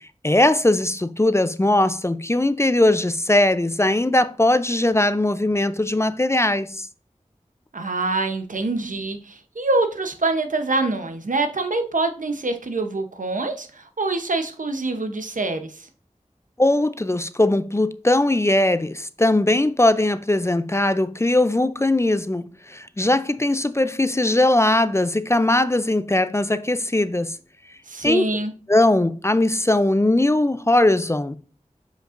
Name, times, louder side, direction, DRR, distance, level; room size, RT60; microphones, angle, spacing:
voice 1, 0.2-6.9 16.6-27.4 28.0-28.3 28.7-31.3, left 1 dB, 20° left, 0.4 m, -20 dB
voice 2, 7.7-15.9 27.9-28.5, right 3 dB, 85° right, 0.8 m, -25 dB
7.7 x 5.1 x 2.5 m
wide cardioid pair, 40°, 13 cm